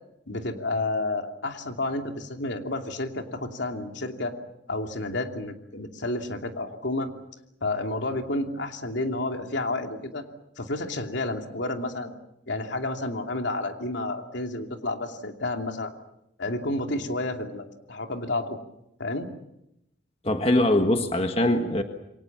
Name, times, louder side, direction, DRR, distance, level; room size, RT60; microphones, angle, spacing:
voice 1, 0.3-4.3 4.7-7.1 7.6-10.2 10.6-12.1 12.5-15.9 16.4-18.6 19.0-19.3, left 2 dB, 75° left, 4 dB, 2.8 m, -30 dB
voice 2, 20.2-21.8, left 1 dB, 30° left, 6 dB, 1.5 m, -22 dB
28.0 x 24.0 x 7.4 m, 0.83 s
head